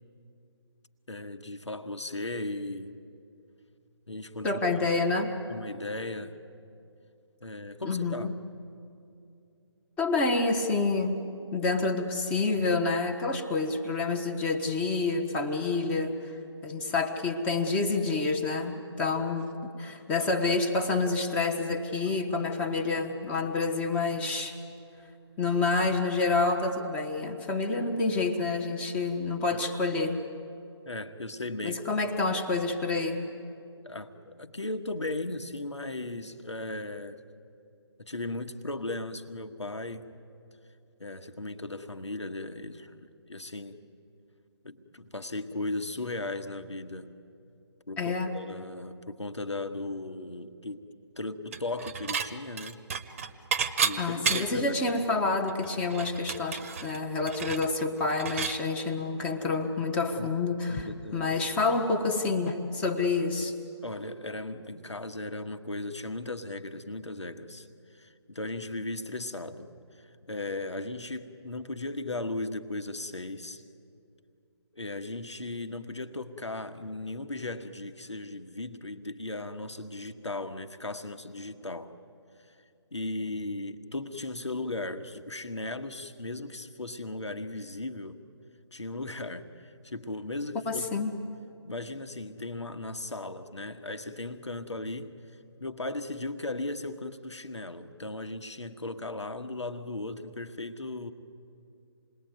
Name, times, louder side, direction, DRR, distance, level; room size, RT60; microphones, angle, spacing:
voice 1, 1.1-3.0 4.1-4.9 5.5-6.4 7.4-8.4 29.5-29.6 30.8-31.8 33.8-37.2 38.0-40.2 41.0-43.8 44.6-47.1 47.9-50.8 51.2-52.8 53.8-55.0 60.2-60.3 60.7-61.4 63.8-73.6 74.7-81.9 82.5-82.6 82.9-88.2 88.7-91.0 91.6-95.1 95.6-101.1, left 2 dB, 80° left, 7 dB, 1.5 m, -37 dB
voice 2, 4.4-5.3 7.8-8.3 10.0-11.2 11.5-16.2 16.6-24.6 25.4-30.2 31.6-33.3 48.0-48.3 54.0-63.5 90.6-91.1, left 3 dB, 10° left, 4 dB, 1.0 m, -28 dB
Dishes pots and pans / Chink clink, 51.5-52.3 52.6-54.7 55.1-55.2 55.5-58.6, right 6 dB, 30° right, 1.0 m, -31 dB
28.0 x 20.5 x 9.4 m, 2.6 s
figure-of-eight pair, 150°, 14 cm